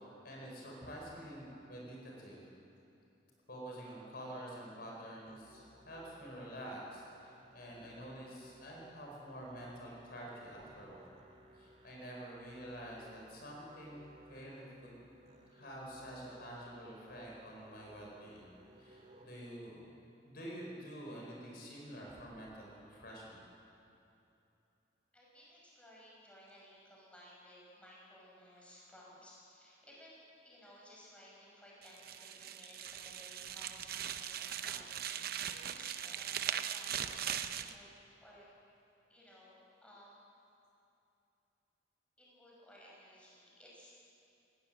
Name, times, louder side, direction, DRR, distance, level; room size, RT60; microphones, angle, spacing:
voice 1, 0.0-2.4 3.5-11.1 11.5-15.0 15.5-18.5 18.8-23.4, equal, 55° left, -2 dB, 5.0 m, -48 dB
Musical instrument, 5.2-19.3, right 1 dB, 35° right, 2.0 m, -61 dB
voice 2, 25.1-37.9 38.2-38.5 39.1-40.2 42.2-43.9, equal, 5° left, -5 dB, 5.9 m, -58 dB
sound 1, 31.8-37.7, right 9 dB, 55° right, 0.7 m, -40 dB
18.5 x 18.0 x 7.8 m, 2.8 s
head